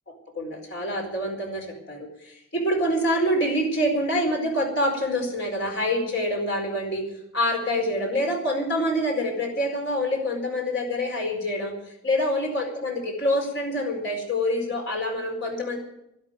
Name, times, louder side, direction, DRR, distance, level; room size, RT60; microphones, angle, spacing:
voice 1, 0.1-7.0 7.3-15.8, equal, 55° left, 1 dB, 4.7 m, -26 dB
12.0 x 11.5 x 9.3 m, 0.83 s
head